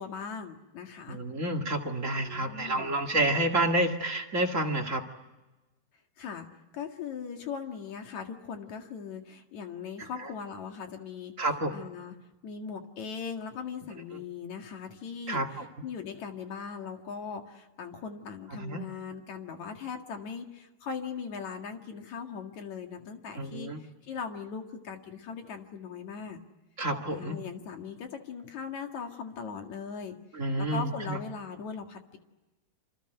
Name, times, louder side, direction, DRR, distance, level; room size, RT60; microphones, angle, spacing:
voice 1, 0.0-1.2 2.2-2.9 6.2-6.5 6.7-11.3 11.7-12.1 12.4-23.7 24.1-26.4 27.1-30.1 30.6-32.2, left 6 dB, 50° left, 4 dB, 2.9 m, -39 dB
voice 2, 1.1-5.0 10.2-10.3 11.4-11.8 14.1-14.2 15.3-15.7 18.6-18.8 23.3-23.8 26.8-27.4 30.3-31.2, right 1 dB, 35° right, 2 dB, 1.4 m, -29 dB
28.0 x 26.0 x 8.0 m, 1.1 s
omnidirectional pair, 4.6 m